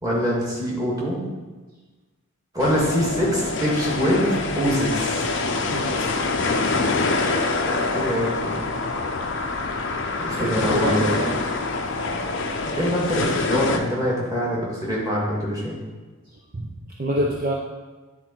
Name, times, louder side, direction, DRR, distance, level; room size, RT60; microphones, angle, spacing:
voice 1, 0.0-1.2 2.5-5.3 7.2-7.3 7.8-8.9 10.2-11.2 12.3-12.4 12.7-15.8, equal, 15° right, -5 dB, 1.7 m, -24 dB
sound 1, 2.6-13.8, left 3 dB, 55° left, 0.6 m, -25 dB
voice 2, 5.7-6.3 10.4-11.4 12.2-12.3 16.5-16.7 17.0-17.5, equal, 40° right, -2 dB, 0.6 m, -27 dB
9.6 x 3.8 x 4.4 m, 1.3 s
head